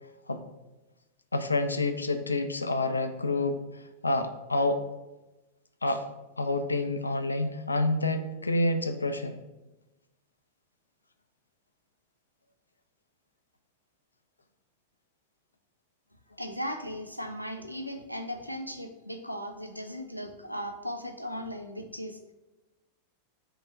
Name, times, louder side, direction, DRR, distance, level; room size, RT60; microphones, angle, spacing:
voice 1, 1.3-4.8 5.8-6.0 6.4-9.4, left 2 dB, 80° left, 7 dB, 0.3 m, -28 dB
voice 2, 16.4-22.2, equal, 90° right, 7 dB, 0.4 m, -37 dB
4.5 x 2.1 x 4.5 m, 1.0 s
figure-of-eight pair, 90°, 0 cm